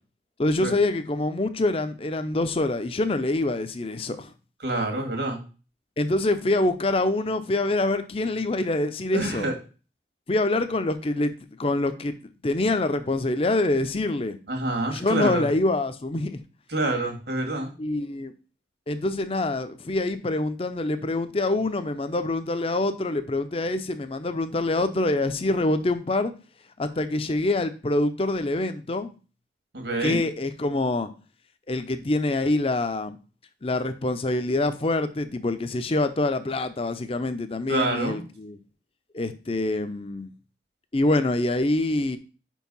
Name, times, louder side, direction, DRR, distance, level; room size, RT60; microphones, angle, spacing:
voice 1, 0.4-4.3 6.0-9.5 10.3-12.2 12.4-14.4 14.9-16.4 17.8-18.3 18.9-26.3 26.8-29.1 30.0-31.1 31.7-33.2 33.6-38.6 39.1-40.3 40.9-42.2, left 2 dB, 35° left, 0.6 m, -25 dB
voice 2, 4.6-5.4 9.1-9.5 14.5-15.5 16.7-17.7 29.7-30.2 37.7-38.2, right 2 dB, 75° right, 1.9 m, -27 dB
5.4 x 4.6 x 5.4 m
head